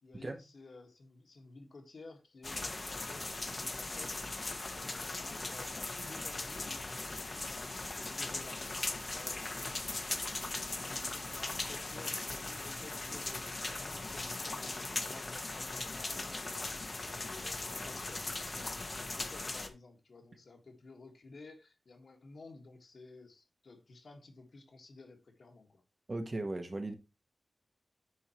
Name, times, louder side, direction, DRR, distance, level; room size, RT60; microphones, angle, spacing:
voice 1, 0.0-4.3 4.7-25.8, left 3 dB, 60° left, 1.7 m, -54 dB
sound 1, 2.4-19.7, left 2 dB, 35° left, 0.9 m, -39 dB
voice 2, 26.1-26.9, right 2 dB, 30° right, 1.1 m, -37 dB
10.5 x 4.4 x 3.0 m
wide cardioid pair, 135°, 0 cm